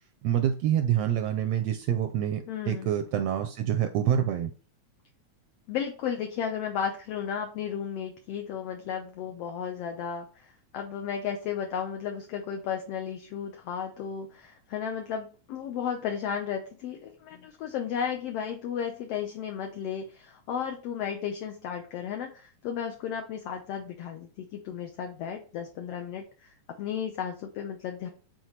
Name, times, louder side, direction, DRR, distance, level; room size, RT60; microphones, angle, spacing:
voice 1, 0.2-4.5, right 10 dB, 80° right, 1.5 m, -26 dB
voice 2, 2.5-2.9 5.7-28.1, left 8 dB, 70° left, 1.5 m, -34 dB
8.0 x 4.0 x 3.2 m
omnidirectional pair, 3.4 m